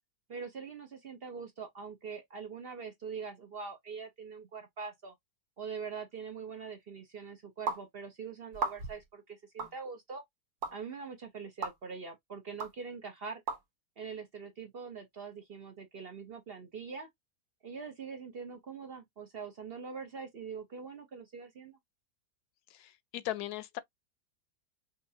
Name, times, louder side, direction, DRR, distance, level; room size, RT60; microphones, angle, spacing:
voice 1, 0.3-5.1 5.6-10.2 10.7-13.4 14.0-17.1 17.6-21.8, right 5 dB, 50° right, 0.8 m, -43 dB
sound 1, 7.7-7.8 8.5-9.0 9.6-9.7 10.6-10.7 11.6-11.7 12.6-12.7 13.5-13.6, right 4 dB, 75° right, 1.5 m, -34 dB
voice 2, 22.7-23.8, left 13 dB, 80° left, 1.1 m, -38 dB
5.5 x 2.5 x 2.7 m
omnidirectional pair, 1.6 m